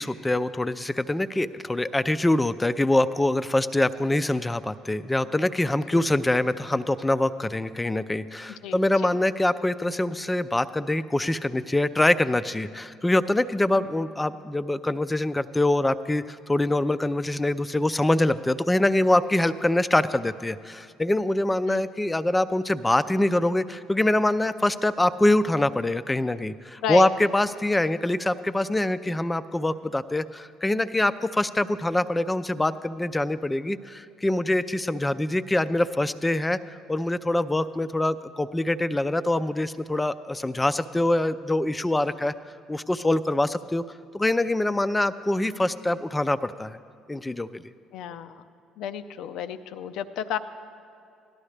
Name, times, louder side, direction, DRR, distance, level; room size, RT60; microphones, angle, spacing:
voice 1, 0.0-42.3 42.7-43.8 44.1-46.8 47.1-47.7, left 1 dB, 15° left, 13 dB, 0.5 m, -24 dB
voice 2, 8.6-9.2 13.7-13.9 21.7-21.8 26.8-27.1 47.9-48.4 48.8-50.4, left 9 dB, 70° left, 11 dB, 0.5 m, -32 dB
17.5 x 12.0 x 3.3 m, 2.6 s
hypercardioid pair, 60°, 0 cm